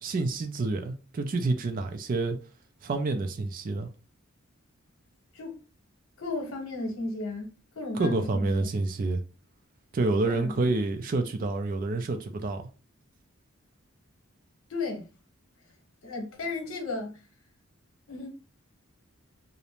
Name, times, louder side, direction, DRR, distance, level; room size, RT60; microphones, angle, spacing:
voice 1, 0.0-2.4 2.8-3.9 8.0-9.2 9.9-12.7, right 3 dB, 40° right, 0.3 m, -28 dB
voice 2, 6.2-8.7 10.2-10.6 14.7-15.1 16.0-17.2 18.1-18.3, left 3 dB, 85° left, 0.9 m, -34 dB
2.5 x 2.0 x 2.9 m
head